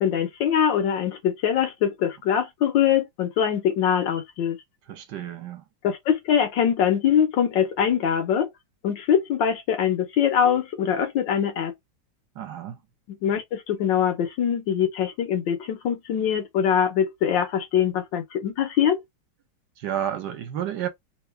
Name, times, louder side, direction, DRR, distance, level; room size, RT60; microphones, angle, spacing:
voice 1, 0.0-4.6 5.8-8.5 8.8-11.7 13.1-19.0, left 8 dB, 80° left, 1.6 m, -23 dB
voice 2, 4.9-5.6 12.4-12.8 19.8-20.9, right 10 dB, 70° right, 1.3 m, -31 dB
3.6 x 2.3 x 3.3 m
omnidirectional pair, 2.0 m